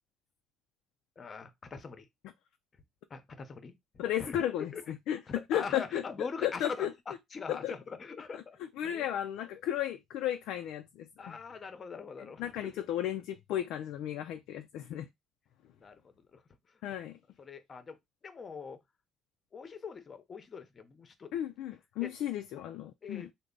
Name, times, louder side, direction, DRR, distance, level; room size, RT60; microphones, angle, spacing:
voice 1, 1.2-2.1 3.1-3.8 4.2-4.4 4.7-4.8 5.3-8.6 8.8-9.1 11.2-12.9 15.8-16.4 17.4-18.0 18.2-18.8 19.5-21.3 22.0-22.1 23.0-23.3, left 5 dB, 35° left, 0.7 m, -42 dB
voice 2, 4.0-6.9 7.5-7.7 8.8-11.4 12.4-15.1 16.8-17.2 21.3-23.3, left 11 dB, 75° left, 0.3 m, -34 dB
3.3 x 2.1 x 3.8 m
cardioid pair, 110°, 0 cm